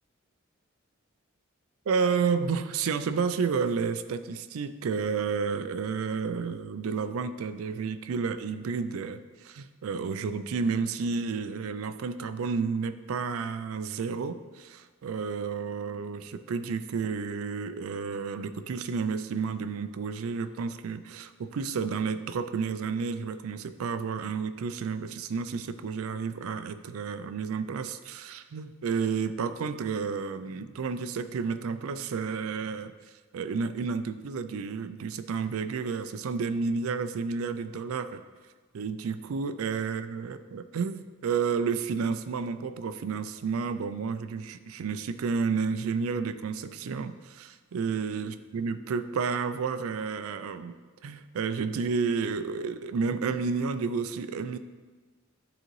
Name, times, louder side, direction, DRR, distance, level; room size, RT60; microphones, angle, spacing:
voice 1, 1.9-32.9 33.3-38.2 38.7-50.7 51.0-54.6, right 5 dB, 80° right, 11 dB, 0.4 m, -31 dB
10.5 x 3.8 x 3.1 m, 1.4 s
head